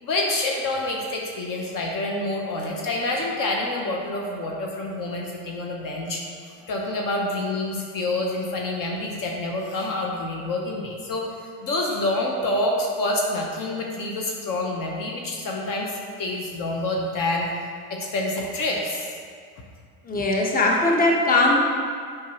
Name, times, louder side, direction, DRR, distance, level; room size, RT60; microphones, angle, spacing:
voice 1, 0.0-6.2 6.7-11.3 11.6-15.9 16.2-17.5 17.9-19.1, left 2 dB, 45° left, 0 dB, 1.0 m, -27 dB
voice 2, 20.1-21.5, left 2 dB, 20° left, -1 dB, 1.0 m, -20 dB
7.2 x 5.1 x 2.9 m, 2.1 s
hypercardioid pair, 85°, 45 cm